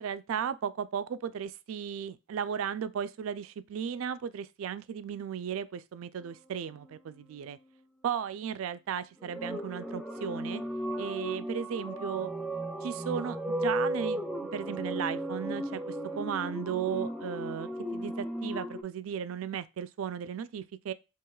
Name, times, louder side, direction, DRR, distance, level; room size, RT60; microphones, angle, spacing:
voice 1, 0.0-7.6 8.0-10.6 11.0-12.3 12.8-20.9, right 8 dB, 85° right, 0.3 m, -35 dB
sound 1, 9.2-18.8, right 1 dB, ahead, 0.3 m, -35 dB
4.7 x 2.9 x 2.3 m
head